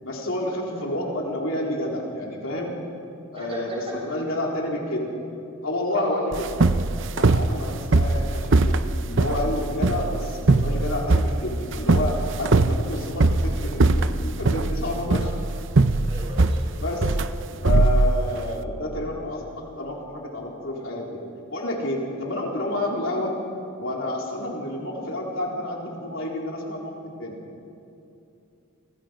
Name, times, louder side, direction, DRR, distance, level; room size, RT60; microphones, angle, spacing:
voice 1, 0.0-2.7 3.3-5.1 5.6-6.5 7.2-15.3 16.8-17.1 17.6-21.2 21.5-23.4 23.8-27.4, left 1 dB, 65° left, -2 dB, 4.1 m, -29 dB
voice 2, 5.9-6.3 16.1-16.7, right 1 dB, 25° right, -2 dB, 6.8 m, -35 dB
sound 1, 6.3-18.5, right 2 dB, 60° right, 0.8 m, -21 dB
30.0 x 26.0 x 5.3 m, 2.7 s
head